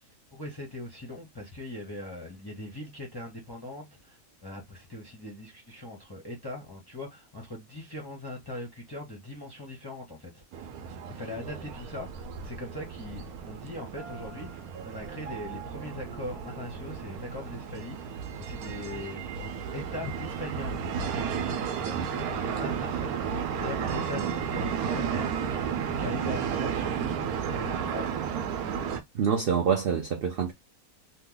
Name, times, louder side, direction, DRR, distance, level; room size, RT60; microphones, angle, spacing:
voice 1, 0.3-10.4 11.1-21.2 21.7-28.1, left 1 dB, 25° left, 0.5 m, -40 dB
sound 1, 10.5-29.0, right 7 dB, 90° right, 1.1 m, -33 dB
Piano, 14.0-17.8, right 7 dB, 50° right, 0.9 m, -47 dB
voice 2, 29.1-30.5, right 7 dB, 70° right, 0.5 m, -26 dB
3.0 x 2.1 x 3.7 m
omnidirectional pair, 1.5 m